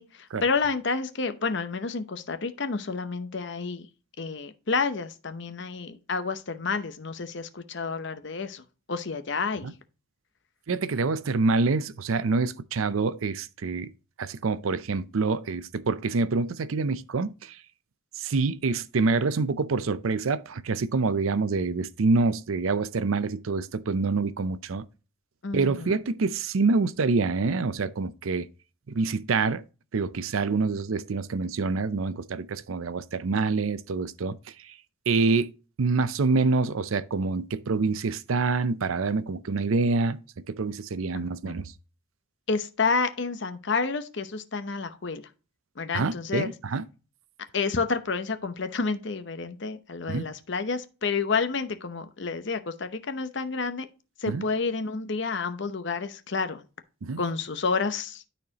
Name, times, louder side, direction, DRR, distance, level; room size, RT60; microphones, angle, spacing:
voice 1, 0.0-3.9 4.2-8.6 8.9-9.7 25.4-26.0 41.1-41.6 42.5-45.2 45.8-46.5 47.5-53.9 54.2-56.6 57.2-58.2, left 4 dB, 60° left, 0.8 m, -29 dB
voice 2, 10.7-13.9 14.2-17.6 18.2-24.9 25.5-28.5 28.9-29.6 29.9-34.4 35.1-35.5 35.8-40.2 40.5-41.7 45.9-46.8 50.1-50.3 54.3-54.4 57.0-57.2, right 4 dB, 85° right, 0.6 m, -26 dB
12.5 x 4.3 x 2.9 m
head